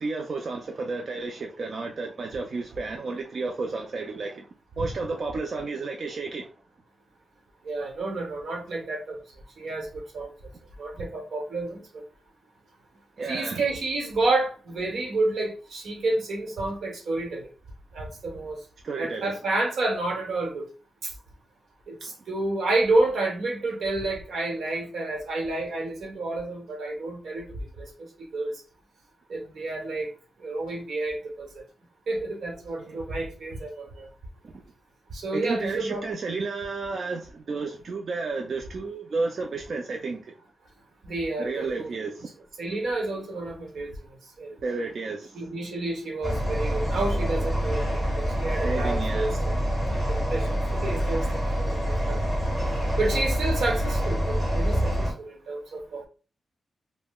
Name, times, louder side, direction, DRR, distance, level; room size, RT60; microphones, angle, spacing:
voice 1, 0.0-4.5 4.8-6.5 13.2-13.6 18.8-19.4 22.0-22.1 32.8-33.0 34.4-34.5 35.3-40.4 41.4-42.3 44.6-45.4 48.6-49.4 52.0-52.2 52.5-52.7, right 3 dB, 45° right, 0.3 m, -32 dB
voice 2, 7.6-9.2 9.6-10.3 10.8-12.0 13.3-17.5 17.9-18.6 19.0-20.7 21.0-21.1 21.9-27.5 27.8-27.9 28.3-28.5 29.3-30.1 30.4-31.5 32.1-34.1 35.1-36.0 41.0-41.9 42.6-43.9 44.4-44.6 45.3-49.5 50.1-51.3 51.6-52.2 53.0-56.1, right 2 dB, 70° right, 1.0 m, -29 dB
sound 1, 46.2-55.1, equal, 10° right, 1.5 m, -26 dB
5.3 x 2.0 x 2.2 m
wide cardioid pair, 165°, 0 cm